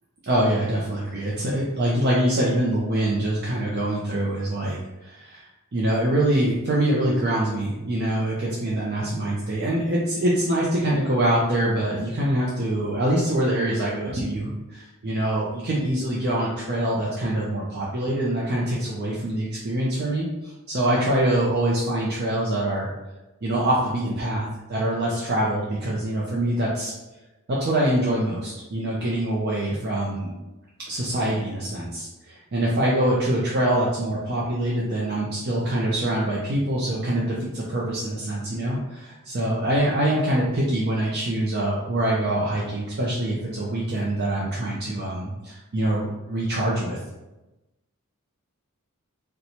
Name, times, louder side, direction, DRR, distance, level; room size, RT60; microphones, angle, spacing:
voice 1, 0.2-22.9 23.4-26.9 27.5-30.3 30.9-47.0, right 1 dB, 45° right, -5 dB, 0.5 m, -24 dB
4.0 x 2.2 x 2.9 m, 1.0 s
head